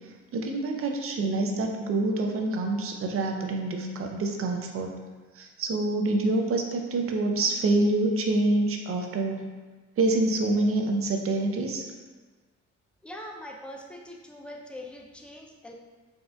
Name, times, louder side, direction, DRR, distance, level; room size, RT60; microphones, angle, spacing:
voice 1, 0.3-4.9 5.3-9.5 10.0-11.8, right 2 dB, 50° right, 3 dB, 0.5 m, -26 dB
voice 2, 13.0-15.7, left 1 dB, 5° left, 0 dB, 0.4 m, -42 dB
4.2 x 2.4 x 2.3 m, 1.3 s
cardioid pair, 90°, 30 cm